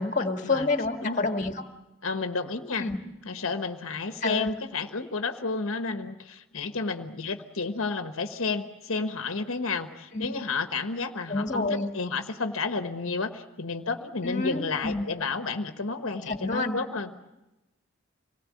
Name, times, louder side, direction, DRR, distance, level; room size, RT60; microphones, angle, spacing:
voice 1, 0.0-1.7 2.8-3.0 4.2-4.5 10.1-10.2 11.3-11.9 14.2-15.0 16.3-16.8, left 3 dB, 35° left, 5 dB, 1.8 m, -28 dB
voice 2, 2.0-2.9 3.3-17.1, left 4 dB, 75° left, 7 dB, 1.2 m, -31 dB
26.0 x 19.0 x 8.5 m, 0.98 s
head